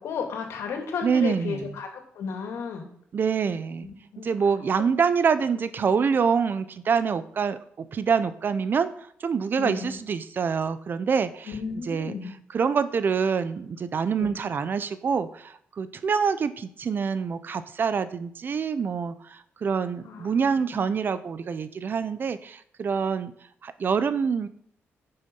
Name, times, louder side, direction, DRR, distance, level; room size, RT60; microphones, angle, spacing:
voice 1, 0.0-2.9 3.8-4.3 5.5-6.1 9.6-10.0 11.5-12.3 14.2-14.4 20.0-20.9, left 5 dB, 80° left, 4 dB, 2.5 m, -34 dB
voice 2, 1.0-1.6 3.1-3.9 4.2-11.5 11.9-12.2 12.5-23.3 23.6-24.5, right 6 dB, 50° right, 13 dB, 0.8 m, -26 dB
10.0 x 6.9 x 5.5 m, 0.63 s
cardioid pair, 110°, 5 cm